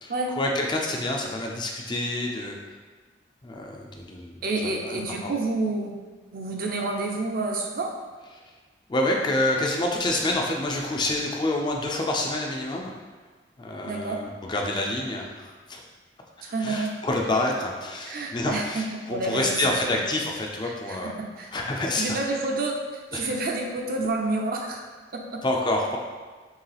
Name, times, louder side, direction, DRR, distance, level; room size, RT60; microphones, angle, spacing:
voice 1, 0.0-2.6 3.4-4.4 4.6-5.3 8.9-12.9 13.6-15.8 16.4-21.1 21.5-22.2 23.1-23.3 25.4-26.0, left 1 dB, 25° left, 0 dB, 0.4 m, -28 dB
voice 2, 4.4-6.0 6.3-7.9 13.8-14.2 16.4-17.0 17.4-17.5 18.1-20.0 20.6-21.5 22.0-24.8 25.1-25.4, right 2 dB, 50° right, 1 dB, 0.5 m, -29 dB
4.6 x 3.3 x 3.3 m, 1.4 s
head